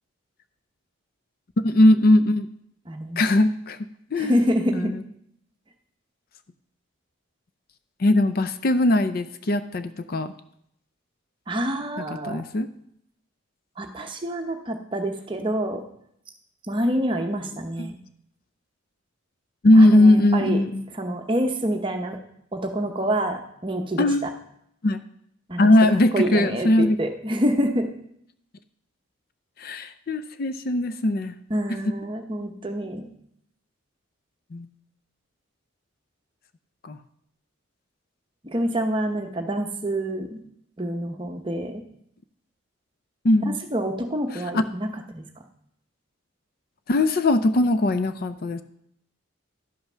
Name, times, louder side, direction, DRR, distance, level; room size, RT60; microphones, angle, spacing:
voice 1, 1.6-2.5 3.2-3.8 4.1-4.4 4.7-5.0 8.0-10.3 12.2-12.7 17.8-17.9 19.6-20.8 24.0-24.3 24.8-25.0 25.6-27.0 29.6-31.4 34.5-34.7 36.8-37.0 43.2-43.6 44.3-44.6 46.9-48.6, left 1 dB, 45° left, 11 dB, 0.5 m, -19 dB
voice 2, 2.9-3.2 4.2-4.9 11.5-12.4 13.8-15.8 16.7-18.0 19.7-20.6 20.9-22.2 22.5-24.3 25.5-27.9 31.5-33.0 38.4-40.4 40.8-41.8 43.7-45.2, equal, 25° right, 4 dB, 0.8 m, -27 dB
11.5 x 5.7 x 5.6 m, 0.72 s
head